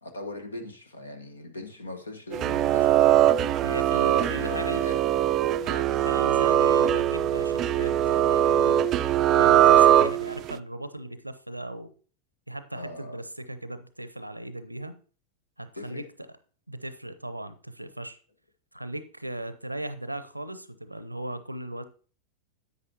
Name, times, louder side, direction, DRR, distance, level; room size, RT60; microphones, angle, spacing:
voice 1, 0.0-3.0 3.7-5.0 12.7-13.2 15.7-16.1, left 2 dB, 75° left, 1.3 m, -40 dB
sound 1, 2.3-10.5, right 11 dB, 35° right, 0.3 m, -21 dB
voice 2, 3.6-5.0 5.6-8.8 9.3-11.9 12.5-14.9 15.6-16.0 16.7-18.2 18.7-21.8, right 1 dB, 85° right, 0.6 m, -37 dB
10.5 x 8.4 x 2.8 m
figure-of-eight pair, 90°, 0 cm